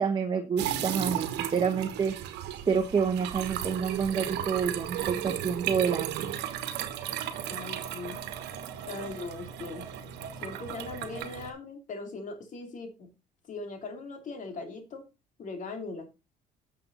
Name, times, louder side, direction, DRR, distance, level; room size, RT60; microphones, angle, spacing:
voice 1, 0.0-2.1 2.6-6.3, right 6 dB, 30° right, 4 dB, 1.3 m, -28 dB
sound 1, 0.6-11.5, right 10 dB, 90° right, 1.3 m, -35 dB
voice 2, 7.4-8.2 8.9-9.9 10.4-13.1 13.5-15.1 15.4-16.0, left 3 dB, 50° left, 5 dB, 2.9 m, -40 dB
9.3 x 7.0 x 4.0 m, 0.26 s
cardioid pair, 110°, 17 cm